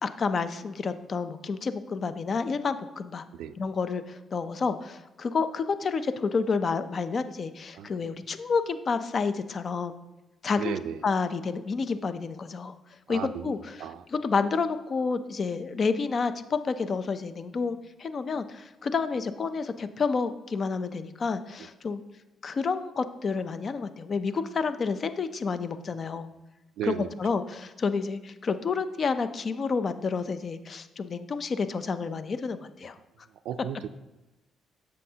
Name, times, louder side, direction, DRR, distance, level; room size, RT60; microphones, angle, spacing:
voice 1, 0.0-3.3 3.6-9.9 10.4-10.7 11.0-12.8 13.1-13.6 14.1-22.0 22.4-26.3 26.9-33.0, left 5 dB, 45° left, 11 dB, 0.5 m, -29 dB
voice 2, 10.6-11.1 13.1-13.5 13.8-14.1 21.6-21.7 26.8-27.4 33.4-33.9, right 10 dB, 85° right, 13 dB, 0.3 m, -35 dB
7.7 x 6.4 x 2.8 m, 1.1 s
cardioid pair, 90°, 0 cm